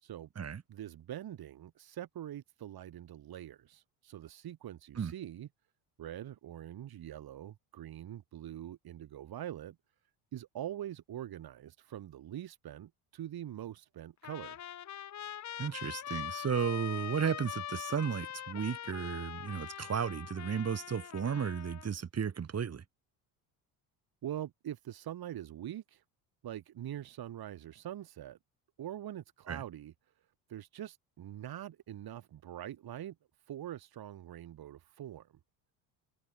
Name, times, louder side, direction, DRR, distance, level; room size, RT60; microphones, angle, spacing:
voice 1, 0.7-5.5 6.0-9.8 10.3-14.6 24.2-26.0 26.4-28.4 28.8-29.9 30.5-33.2 33.5-35.3, right 11 dB, 50° right, 3.6 m, -44 dB
Trumpet, 14.2-21.9, left 10 dB, 40° left, 1.1 m, -43 dB
voice 2, 15.6-22.8 29.5-29.6, right 7 dB, 35° right, 3.1 m, -34 dB
supercardioid pair, 90°, 46 cm